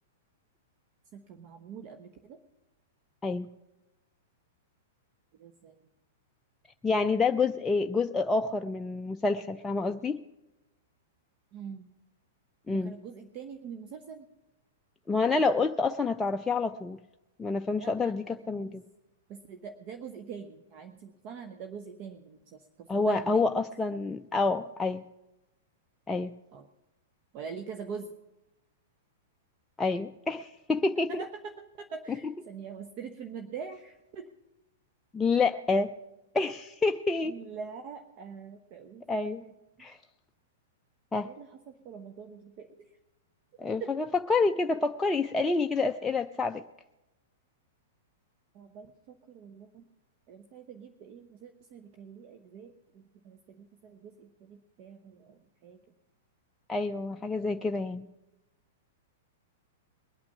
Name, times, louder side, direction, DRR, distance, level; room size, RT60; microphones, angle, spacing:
voice 1, 1.1-2.4 5.4-5.8 11.5-11.9 12.7-14.3 17.8-18.7 19.3-23.4 26.5-26.7 27.3-28.1 31.1-34.3 37.2-39.0 39.4-39.5 41.2-42.8 43.8-43.9 48.5-49.9 50.3-55.8, right 6 dB, 40° right, 7 dB, 1.0 m, -44 dB
voice 2, 6.8-10.2 12.7-12.9 15.1-17.0 17.4-18.8 22.9-25.0 26.1-26.3 29.8-31.2 35.1-35.9 36.3-37.4 39.1-39.4 39.8-40.0 41.1-41.3 43.6-46.6 56.7-58.0, left 3 dB, 10° left, 5 dB, 0.4 m, -28 dB
21.0 x 8.8 x 5.8 m, 1.0 s
figure-of-eight pair, 105°, 0 cm